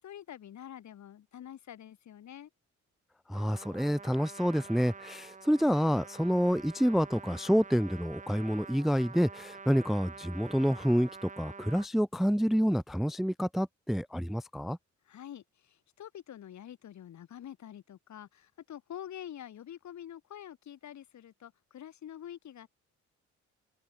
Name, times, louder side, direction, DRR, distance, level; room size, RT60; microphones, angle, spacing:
voice 1, 0.0-2.5 15.1-22.7, left 10 dB, 65° left, 7.9 m, -46 dB
voice 2, 3.3-14.8, equal, ahead, 0.5 m, -28 dB
Trumpet, 3.3-11.9, right 5 dB, 25° right, 1.2 m, -47 dB
open air
cardioid pair, 90°, 30 cm